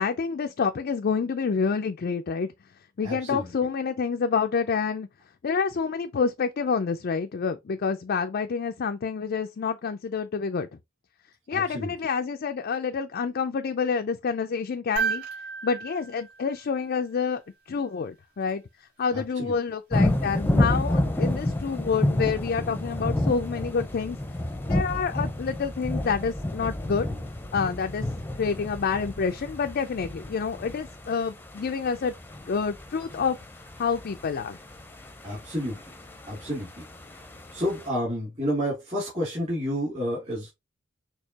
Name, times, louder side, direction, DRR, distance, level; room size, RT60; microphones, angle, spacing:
voice 1, 0.0-2.5 3.0-5.1 5.4-10.7 11.5-15.2 15.6-17.4 17.7-18.6 19.0-24.2 24.7-27.1 27.5-28.1 28.4-32.1 32.5-33.4 33.8-34.6, left 5 dB, 45° left, 0.4 m, -28 dB
voice 2, 3.0-3.5 11.5-11.9 19.1-19.5 35.2-35.8 36.3-36.8 37.5-40.5, equal, 30° right, 2.4 m, -30 dB
sound 1, 15.0-17.3 19.3-19.4, right 6 dB, 55° right, 2.8 m, -33 dB
sound 2, 19.9-37.9, left 1 dB, 10° left, 0.6 m, -30 dB
6.4 x 2.8 x 2.8 m
head